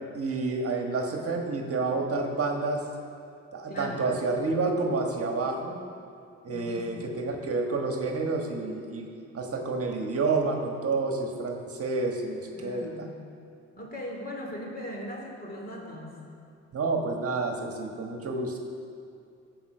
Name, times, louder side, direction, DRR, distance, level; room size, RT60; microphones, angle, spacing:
voice 1, 0.1-2.8 3.5-5.8 6.4-9.1 9.3-12.9 16.7-18.6, right 3 dB, 50° right, 2 dB, 1.4 m, -29 dB
voice 2, 3.7-4.1 6.5-7.2 12.5-13.1 13.8-16.1, left 1 dB, 30° left, -1 dB, 3.0 m, -39 dB
15.0 x 5.2 x 6.6 m, 2.4 s
cardioid pair, 90°, 30 cm